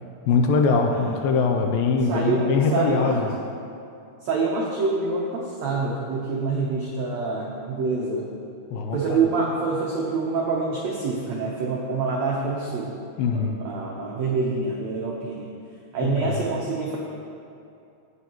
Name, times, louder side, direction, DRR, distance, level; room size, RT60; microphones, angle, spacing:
voice 1, 0.3-3.3 8.7-9.2 13.2-13.6 16.0-16.4, left 4 dB, 80° left, 3 dB, 2.3 m, -22 dB
voice 2, 0.9-1.2 2.1-3.2 4.2-8.3 8.9-13.0 13.3-15.5 15.9-17.0, right 4 dB, 80° right, -3 dB, 1.5 m, -26 dB
16.0 x 7.4 x 3.1 m, 2.6 s
omnidirectional pair, 4.4 m